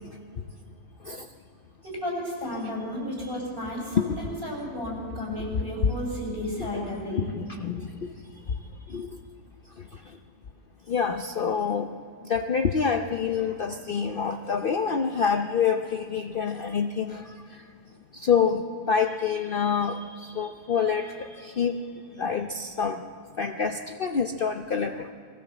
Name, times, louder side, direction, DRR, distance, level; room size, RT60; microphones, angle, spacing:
voice 1, 1.8-7.3, left 1 dB, 35° right, -2 dB, 7.2 m, -33 dB
voice 2, 7.1-8.1 8.9-9.1 10.9-11.9 12.3-17.6 18.1-21.8 22.2-23.0 23.4-25.1, left 6 dB, 70° left, 6 dB, 0.5 m, -27 dB
21.0 x 16.0 x 7.7 m, 2.3 s
omnidirectional pair, 1.9 m